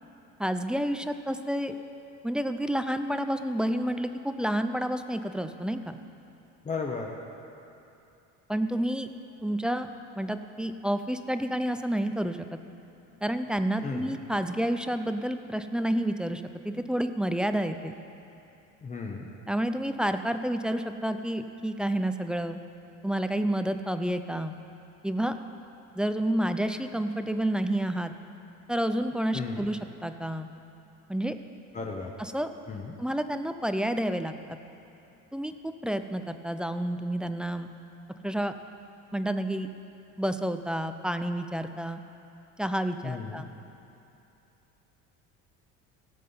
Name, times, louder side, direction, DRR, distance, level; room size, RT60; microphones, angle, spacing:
voice 1, 0.4-1.8 2.2-6.0 8.5-9.1 9.4-9.9 10.2-12.6 13.2-17.9 19.5-22.6 23.0-24.6 25.0-25.3 25.9-28.1 28.7-30.5 31.1-31.4 32.2-32.5 33.0-34.6 35.3-37.7 38.2-38.5 39.1-39.7 40.2-42.0 42.6-43.4, right 1 dB, 5° right, 9 dB, 0.4 m, -29 dB
voice 2, 6.6-7.1 13.8-14.2 18.8-19.3 29.3-29.7 31.7-32.1 32.7-32.9 43.0-43.5, left 4 dB, 25° left, -1 dB, 0.9 m, -35 dB
17.0 x 7.5 x 5.5 m, 2.8 s
cardioid pair, 130°, 30 cm